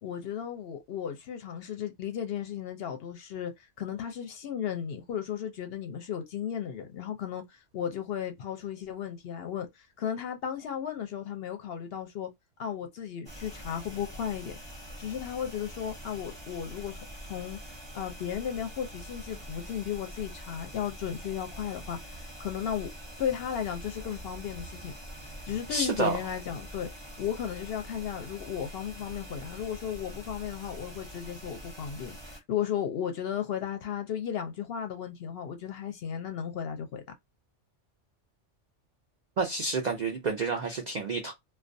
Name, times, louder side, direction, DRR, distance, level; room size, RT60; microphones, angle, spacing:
voice 1, 0.0-3.5 3.8-12.3 12.6-14.6 15.0-17.6 17.9-22.9 23.2-25.0 25.5-26.9 27.2-37.0, left 9 dB, 65° left, 0.7 m, -35 dB
sound 1, 13.3-32.4, equal, 25° right, 0.7 m, -45 dB
voice 2, 25.7-26.2 39.4-41.3, right 4 dB, 65° right, 0.4 m, -29 dB
2.3 x 2.2 x 2.5 m
omnidirectional pair, 1.3 m